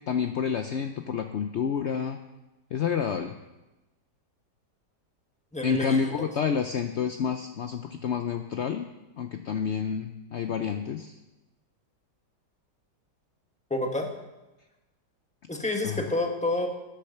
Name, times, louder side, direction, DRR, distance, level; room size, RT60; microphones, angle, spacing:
voice 1, 0.1-2.2 2.7-3.3 5.6-8.9 9.2-11.1 15.8-16.0, left 6 dB, 70° left, 7 dB, 0.6 m, -29 dB
voice 2, 5.5-6.1 13.7-14.1 15.5-16.7, left 2 dB, 5° left, 2 dB, 1.3 m, -28 dB
11.0 x 10.0 x 6.6 m, 1.0 s
omnidirectional pair, 1.9 m